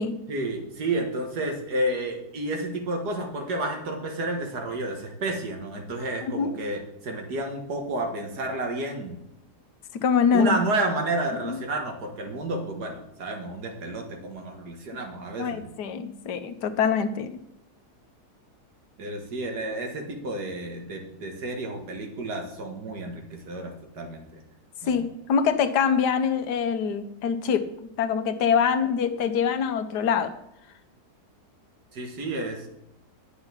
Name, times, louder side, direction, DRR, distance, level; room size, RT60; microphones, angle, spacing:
voice 1, 0.3-9.2 10.3-15.7 19.0-24.3 24.8-25.0 31.9-32.7, right 2 dB, 80° right, 3 dB, 2.1 m, -31 dB
voice 2, 9.9-10.6 11.4-11.6 15.4-17.3 24.9-30.3, left 6 dB, 85° left, 9 dB, 1.4 m, -24 dB
9.7 x 6.8 x 5.9 m, 0.79 s
omnidirectional pair, 1.7 m